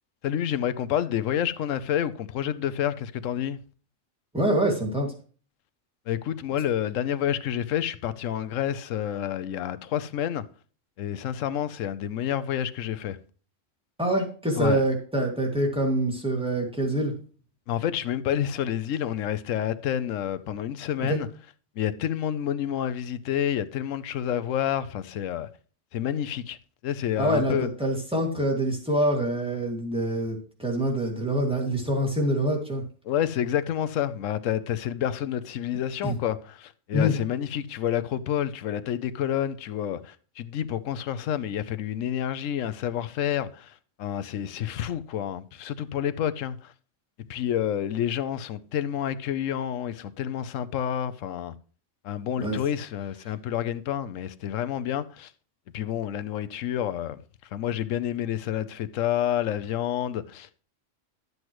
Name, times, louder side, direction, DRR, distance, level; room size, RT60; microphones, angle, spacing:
voice 1, 0.2-3.6 6.1-10.4 11.0-13.2 14.6-14.8 17.7-21.3 21.8-25.5 25.9-26.6 26.8-27.7 33.1-43.7 44.0-46.7 47.3-51.5 52.0-55.3 55.7-57.2 57.5-60.5, left 10 dB, 85° left, 1.0 m, -29 dB
voice 2, 4.3-5.1 14.0-17.1 21.1-21.2 27.2-32.8 36.0-36.1 36.9-37.1 52.4-52.6, right 1 dB, 5° right, 2.1 m, -25 dB
12.0 x 8.0 x 3.1 m
omnidirectional pair, 1.3 m